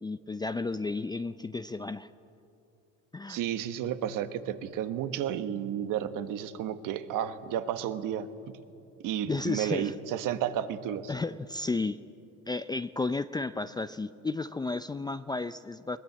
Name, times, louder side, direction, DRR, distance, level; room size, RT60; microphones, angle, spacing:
voice 1, 0.0-2.1 3.1-3.4 9.3-9.9 11.1-12.0 12.5-16.0, left 3 dB, 10° left, 12 dB, 0.5 m, -33 dB
voice 2, 3.3-8.6 9.0-11.1, right 10 dB, 65° right, 10 dB, 1.5 m, -32 dB
21.5 x 20.0 x 8.6 m, 2.7 s
supercardioid pair, 95°, 34 cm